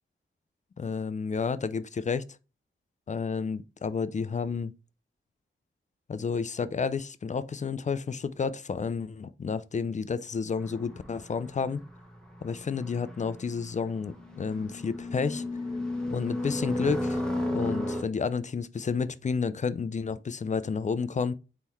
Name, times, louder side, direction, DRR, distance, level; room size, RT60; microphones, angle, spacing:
voice 1, 0.8-2.2 3.1-4.7 6.1-11.8 12.4-15.4 16.1-17.2 17.5-21.3, left 5 dB, 35° left, 0.4 m, -31 dB
sound 1, 10.6-18.0, left 1 dB, 5° left, 1.1 m, -34 dB
4.1 x 3.8 x 3.0 m
wide cardioid pair, 90°, 21 cm